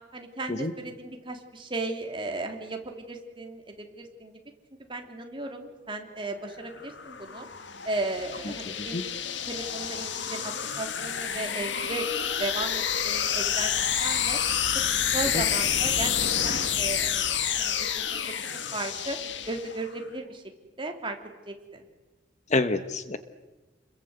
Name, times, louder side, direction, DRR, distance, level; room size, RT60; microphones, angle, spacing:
voice 1, 0.1-4.4 4.8-7.5 7.8-9.0 9.5-12.1 12.4-14.4 15.1-19.2 19.5-20.4 20.8-21.2 21.5-21.9, right 2 dB, 30° right, 3 dB, 3.1 m, -35 dB
sound 1, 6.5-20.0, left 8 dB, 80° left, 1.6 m, -29 dB
voice 2, 8.5-9.0 15.3-15.4 22.5-23.2, left 2 dB, 40° left, 10 dB, 1.1 m, -28 dB
30.0 x 22.0 x 8.0 m, 1.2 s
head